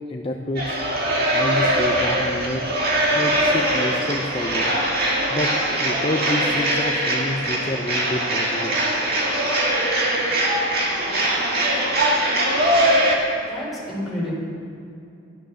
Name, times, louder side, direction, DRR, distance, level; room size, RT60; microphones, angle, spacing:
voice 1, 0.1-0.8 1.3-2.7 3.1-4.7 5.3-8.8, left 1 dB, 25° left, 1 dB, 0.6 m, -28 dB
sound 1, 0.6-13.2, right 1 dB, 45° right, 2.0 m, -21 dB
voice 2, 13.5-14.4, left 1 dB, ahead, -7 dB, 4.5 m, -30 dB
12.5 x 12.5 x 6.4 m, 2.5 s
head